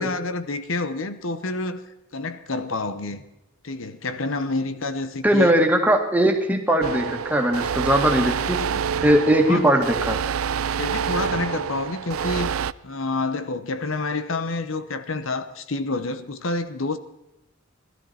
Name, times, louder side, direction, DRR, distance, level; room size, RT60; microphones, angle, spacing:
voice 1, 0.0-1.8 2.1-3.2 3.6-5.5 8.4-8.8 9.5-9.6 10.8-12.5 12.8-17.0, left 3 dB, 75° left, 11 dB, 1.0 m, -28 dB
voice 2, 5.2-8.6 9.0-10.2, right 1 dB, 10° right, 2 dB, 2.0 m, -19 dB
sound 1, 6.8-12.7, right 7 dB, 90° right, 0.4 m, -27 dB
19.5 x 13.0 x 4.3 m, 0.91 s
head